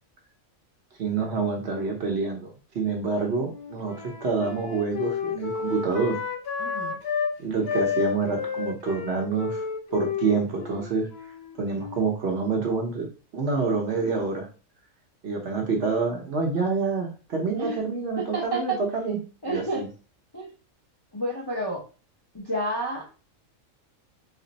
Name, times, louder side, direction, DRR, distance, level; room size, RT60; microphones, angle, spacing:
voice 1, 1.0-4.0 4.2-6.2 6.7-6.8 7.4-9.6 9.9-11.1 11.6-13.1 13.3-14.5 15.2-19.2 19.4-19.9, right 4 dB, 60° right, 1 dB, 1.0 m, -27 dB
Wind instrument woodwind instrument, 3.3-7.3 7.6-12.1, left 6 dB, 60° left, 0.7 m, -31 dB
voice 2, 6.6-7.0 17.6-17.8 18.2-18.8 19.4-19.8 20.3-20.5 21.1-21.8 22.3-23.2, right 1 dB, 25° left, -4 dB, 0.6 m, -30 dB
3.3 x 2.0 x 3.9 m, 0.34 s
omnidirectional pair, 1.4 m